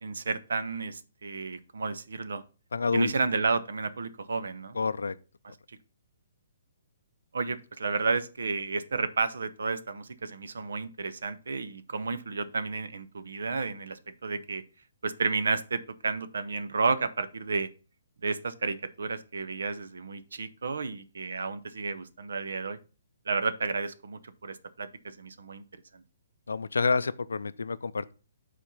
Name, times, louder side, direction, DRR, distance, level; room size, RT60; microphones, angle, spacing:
voice 1, 0.0-2.4 2.9-4.8 7.3-14.6 15.0-17.7 18.2-22.8 23.3-26.0, right 4 dB, 75° right, 0.7 m, -32 dB
voice 2, 2.7-3.1 4.8-5.2 26.5-28.1, left 4 dB, 85° left, 0.4 m, -28 dB
7.2 x 4.2 x 5.5 m
hypercardioid pair, 140°, 0 cm